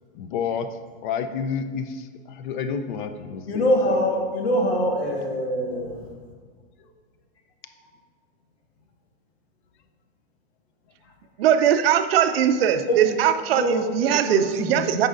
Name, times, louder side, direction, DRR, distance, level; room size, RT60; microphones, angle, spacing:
voice 1, 0.1-0.8 1.0-4.0, left 6 dB, 50° left, 9 dB, 0.5 m, -30 dB
voice 2, 3.5-6.1 12.9-13.0 13.6-14.8, equal, 90° left, 0 dB, 1.6 m, -24 dB
voice 3, 11.4-15.1, right 9 dB, 70° right, 9 dB, 0.6 m, -20 dB
8.9 x 5.4 x 2.5 m, 1.5 s
supercardioid pair, 150°, 31 cm